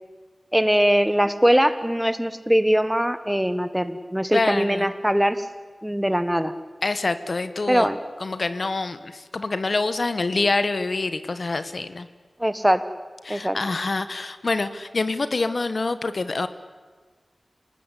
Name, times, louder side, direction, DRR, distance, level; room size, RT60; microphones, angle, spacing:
voice 1, 0.5-5.5 5.8-6.5 7.7-8.0 12.4-12.8 13.3-13.6, equal, 5° right, 12 dB, 1.4 m, -21 dB
voice 2, 4.3-4.9 6.8-7.9 8.2-12.1 13.3-16.5, left 3 dB, 60° left, 12 dB, 1.3 m, -26 dB
27.0 x 19.5 x 10.0 m, 1.4 s
wide cardioid pair, 65°, 0 cm